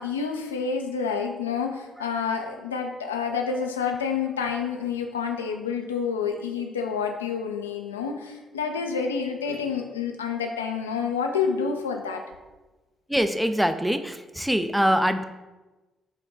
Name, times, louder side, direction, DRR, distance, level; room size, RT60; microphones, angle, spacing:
voice 1, 0.0-12.2, left 6 dB, 80° left, 3 dB, 0.3 m, -28 dB
voice 2, 13.1-15.2, equal, 5° right, 8 dB, 0.3 m, -23 dB
5.1 x 2.2 x 3.7 m, 1.1 s
figure-of-eight pair, 40°, 0 cm